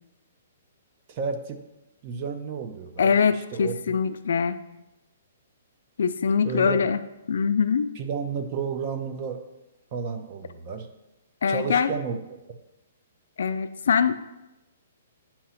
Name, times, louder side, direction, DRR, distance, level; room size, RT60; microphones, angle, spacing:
voice 1, 1.1-1.6 2.0-3.8 6.4-6.8 8.0-9.4 9.9-10.9 11.5-12.2, right 5 dB, 30° right, 7 dB, 0.5 m, -32 dB
voice 2, 3.0-4.6 6.0-7.0 7.3-7.9 11.4-11.9 13.4-14.1, left 6 dB, 70° left, 11 dB, 0.4 m, -23 dB
8.4 x 2.9 x 5.6 m, 0.98 s
hypercardioid pair, 175°, 0 cm